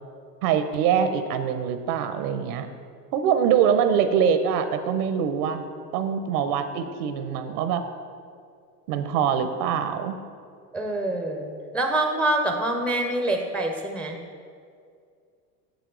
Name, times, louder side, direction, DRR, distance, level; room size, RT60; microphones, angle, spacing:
voice 1, 0.4-2.7 3.1-5.6 5.9-7.8 8.9-10.2, right 8 dB, 70° right, 9 dB, 0.7 m, -24 dB
voice 2, 10.7-14.2, right 1 dB, 5° left, 3 dB, 0.4 m, -26 dB
7.6 x 6.9 x 3.8 m, 2.2 s
hypercardioid pair, 105°, 49 cm